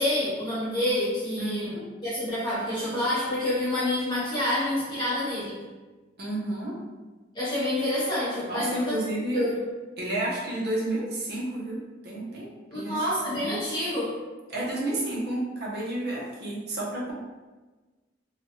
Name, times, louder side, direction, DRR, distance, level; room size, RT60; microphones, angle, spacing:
voice 1, 0.0-1.7 2.0-5.6 7.3-9.0 9.3-9.6 12.7-14.2, left 1 dB, 25° left, -10 dB, 0.8 m, -28 dB
voice 2, 1.4-1.9 6.2-6.8 8.5-9.4 10.0-13.0 13.3-13.6 14.5-17.1, right 1 dB, 55° right, -4 dB, 0.8 m, -31 dB
3.3 x 2.2 x 2.8 m, 1.2 s
head